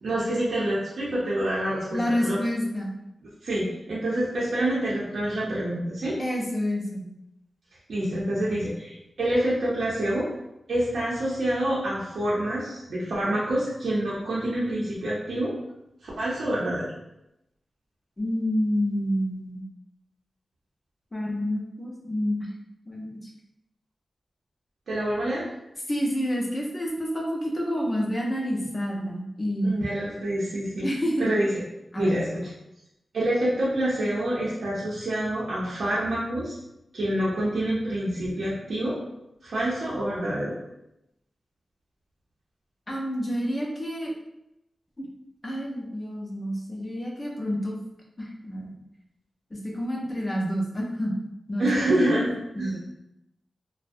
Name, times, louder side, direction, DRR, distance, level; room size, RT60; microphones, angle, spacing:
voice 1, 0.0-2.4 3.4-6.2 7.9-10.3 10.7-15.5 16.0-16.9 24.9-25.4 29.6-30.9 31.2-31.5 32.0-32.4 33.1-36.6 36.9-39.0 39.4-40.5 51.6-52.7, right 1 dB, 85° right, -7 dB, 0.6 m, -27 dB
voice 2, 1.9-2.9 6.2-7.0 18.2-19.6 21.1-22.5 22.9-23.3 25.9-29.7 30.8-31.3 31.9-32.2 42.9-44.1 45.0-45.1 45.4-47.8 48.2-48.7 49.5-51.1 51.5-52.2 52.5-52.8, equal, 25° left, -2 dB, 0.5 m, -28 dB
2.5 x 2.0 x 2.5 m, 0.86 s
wide cardioid pair, 115°, 0 cm